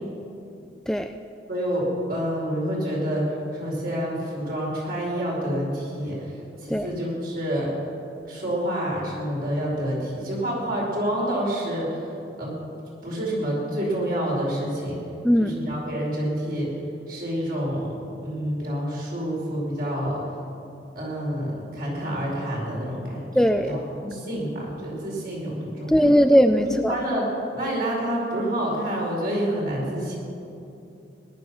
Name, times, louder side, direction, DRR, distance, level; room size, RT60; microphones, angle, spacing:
voice 1, 1.5-6.3 6.6-7.7 8.2-12.1 12.4-12.6 13.0-15.0 15.4-16.7 17.1-17.9 18.2-20.2 20.9-23.3 23.7-26.0 26.6-27.3 27.5-30.2, equal, 50° right, -4 dB, 4.8 m, -28 dB
voice 2, 15.2-15.6 23.4-23.8 25.9-27.0, equal, 5° left, 7 dB, 0.3 m, -19 dB
18.5 x 11.5 x 6.3 m, 2.7 s
head